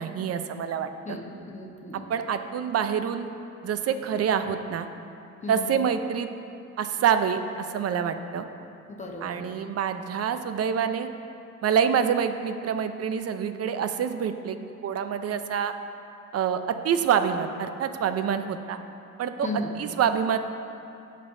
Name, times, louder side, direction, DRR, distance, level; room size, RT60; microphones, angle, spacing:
voice 1, 0.0-1.2 1.9-3.3 3.6-4.9 5.5-6.3 6.8-8.4 9.2-11.1 11.6-14.6 14.8-15.7 16.3-18.8 19.2-19.5 19.8-20.4, right 7 dB, 55° right, 9 dB, 0.6 m, -26 dB
voice 2, 1.0-2.1 5.4-5.8 8.9-9.5 19.4-19.7, left 2 dB, 25° left, 1 dB, 1.2 m, -35 dB
15.0 x 5.4 x 2.7 m, 2.6 s
cardioid pair, 90°, 30 cm